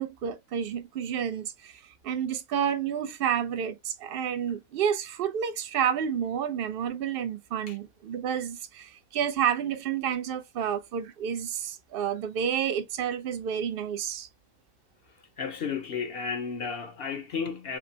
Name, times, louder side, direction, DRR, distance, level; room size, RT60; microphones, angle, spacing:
voice 1, 0.0-14.3, right 8 dB, 55° right, 0.6 m, -30 dB
voice 2, 15.4-17.8, left 5 dB, 55° left, 0.7 m, -33 dB
5.9 x 2.1 x 2.7 m
omnidirectional pair, 1.5 m